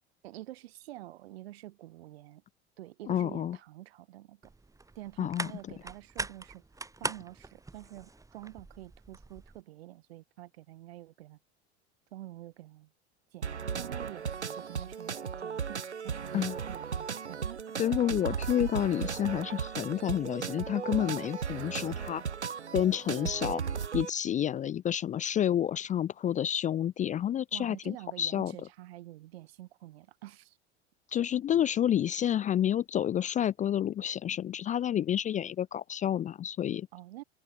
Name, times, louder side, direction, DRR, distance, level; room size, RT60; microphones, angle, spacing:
voice 1, 0.2-2.4 2.8-4.5 4.9-6.6 7.0-11.4 12.1-12.9 13.3-17.6 27.5-30.6 36.9-37.2, right 16 dB, 65° right, 2.9 m, -47 dB
voice 2, 3.1-3.6 5.2-5.5 16.3-16.5 17.8-22.2 22.7-23.6 23.9-28.5 31.1-36.9, left 10 dB, 25° left, 0.5 m, -29 dB
sound 1, 4.4-9.6, right 3 dB, 10° right, 2.0 m, -41 dB
sound 2, 13.4-24.1, right 6 dB, 85° right, 1.4 m, -36 dB
open air
figure-of-eight pair, 75°, 33 cm